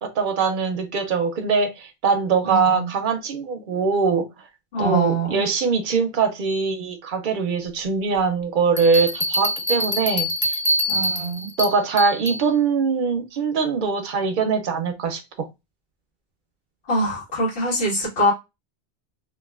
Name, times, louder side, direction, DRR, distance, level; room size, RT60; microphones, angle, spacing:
voice 1, 0.0-4.3 4.8-10.6 11.6-15.2, right 5 dB, 60° right, 0.6 m, -22 dB
voice 2, 2.4-2.9 4.7-5.4 10.9-11.5 16.9-18.3, right 1 dB, 75° left, 1.6 m, -23 dB
Bell, 8.8-12.4, equal, 15° left, 0.6 m, -24 dB
3.0 x 2.4 x 2.3 m
omnidirectional pair, 1.1 m